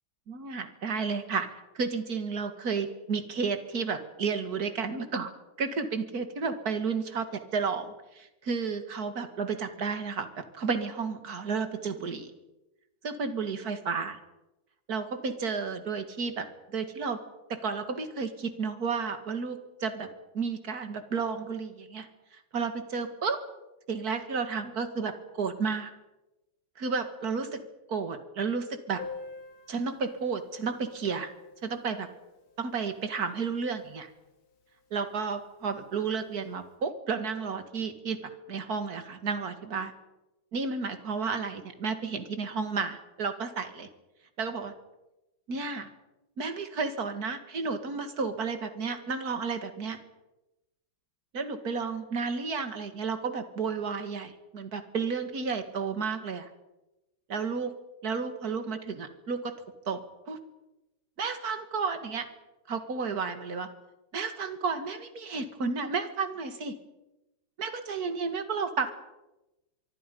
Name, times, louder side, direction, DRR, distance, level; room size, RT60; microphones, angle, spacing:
voice 1, 0.3-5.3 5.6-12.3 13.0-14.2 14.9-16.5 16.7-17.2 17.5-20.1 20.3-23.4 23.9-25.9 26.8-29.0 29.7-31.3 31.6-32.1 32.6-34.1 34.9-38.2 38.5-39.9 40.5-43.9 44.4-44.7 45.5-45.9 46.4-50.0 51.3-56.5 57.3-57.7 58.0-59.5 59.9-60.0 60.3-60.4 61.2-62.3 62.7-63.7 64.1-66.7 67.6-68.9, right 5 dB, 50° right, 8 dB, 2.4 m, -32 dB
Piano, 29.0-34.3 34.6-34.7 34.9-35.1 35.4-35.5 36.3-36.4, left 4 dB, 85° left, 3.2 m, -48 dB
25.0 x 24.0 x 5.4 m, 0.98 s
omnidirectional pair, 2.2 m